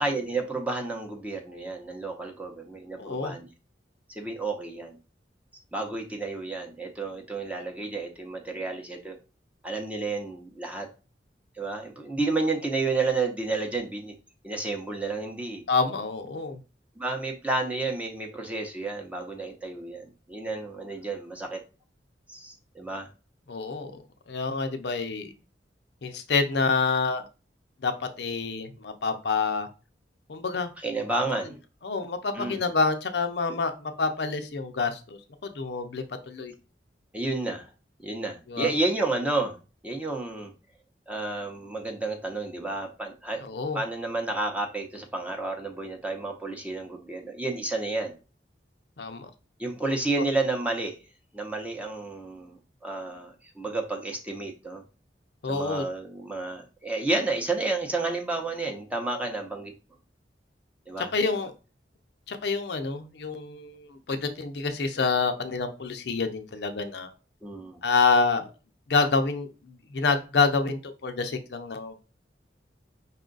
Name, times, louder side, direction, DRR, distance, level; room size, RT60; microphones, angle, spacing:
voice 1, 0.0-3.5 4.1-5.0 5.7-9.2 9.6-10.9 11.6-14.1 14.4-15.6 17.0-21.6 22.3-23.1 30.8-31.6 32.3-32.7 37.1-37.7 38.0-39.6 39.8-40.5 41.1-43.4 43.7-48.1 49.6-50.9 51.3-54.8 55.5-59.7 60.9-61.1 67.4-67.8, right 3 dB, 10° right, 2 dB, 0.8 m, -31 dB
voice 2, 3.0-3.3 15.7-16.6 23.5-24.0 24.3-25.3 26.0-27.2 27.8-27.9 28.2-29.7 30.3-30.7 31.8-35.2 35.5-36.5 38.5-38.7 43.4-43.8 49.0-49.3 55.4-55.8 61.0-61.5 62.3-67.1 67.8-68.5 68.9-71.9, left 4 dB, 65° left, 7 dB, 0.6 m, -27 dB
5.4 x 2.4 x 3.8 m, 0.32 s
head